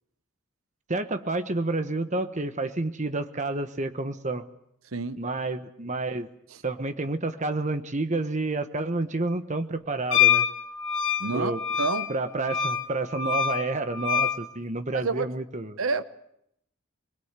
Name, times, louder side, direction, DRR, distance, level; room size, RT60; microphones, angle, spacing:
voice 1, 0.9-4.4 5.2-6.3 6.6-10.4 11.3-11.6 12.1-15.8, right 2 dB, 35° right, 9 dB, 1.3 m, -29 dB
voice 2, 4.9-5.2 11.2-11.5 11.8-12.1 14.9-15.3 15.8-16.0, right 4 dB, 90° right, 13 dB, 0.9 m, -28 dB
Wind instrument woodwind instrument, 10.1-14.4, left 8 dB, 75° left, 2.1 m, -25 dB
24.0 x 21.0 x 8.3 m, 0.75 s
head